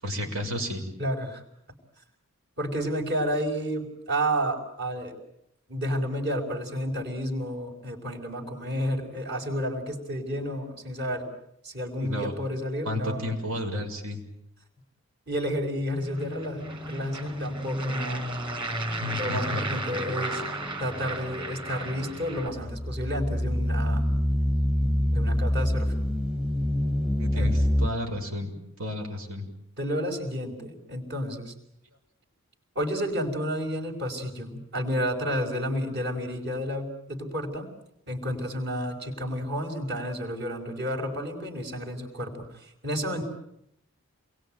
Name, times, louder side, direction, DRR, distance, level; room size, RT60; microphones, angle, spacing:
voice 1, 0.0-0.8 12.0-12.3 12.8-14.2 19.0-19.6 27.2-28.5 28.8-29.5, left 1 dB, 85° right, 3 dB, 6.6 m, -32 dB
voice 2, 1.0-1.4 2.6-5.2 5.7-11.3 11.6-13.3 15.3-18.3 19.2-20.4 20.8-24.1 24.8-26.0 27.3-27.5 29.8-31.5 32.8-37.7 38.1-43.2, equal, 50° right, 2 dB, 5.6 m, -31 dB
sound 1, 15.9-22.5, right 1 dB, 25° right, 4.3 m, -33 dB
sound 2, 22.2-27.9, left 1 dB, 5° right, 1.0 m, -25 dB
29.0 x 22.5 x 9.2 m, 0.77 s
head